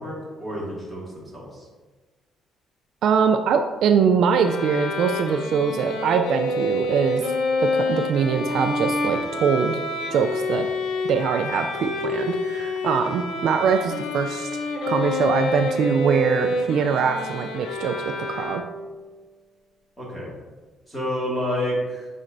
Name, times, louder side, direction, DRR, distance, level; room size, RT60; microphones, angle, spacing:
voice 1, 0.0-1.6 20.0-20.3 20.9-22.1, equal, 5° left, -6 dB, 2.0 m, -29 dB
voice 2, 3.0-7.2 7.6-9.8 10.1-10.7 11.0-17.9 18.3-18.6, right 6 dB, 55° right, 6 dB, 0.3 m, -23 dB
Bowed string instrument, 4.3-19.0, left 2 dB, 85° left, 0.8 m, -27 dB
9.6 x 4.2 x 2.6 m, 1.3 s
cardioid pair, 170°, 0 cm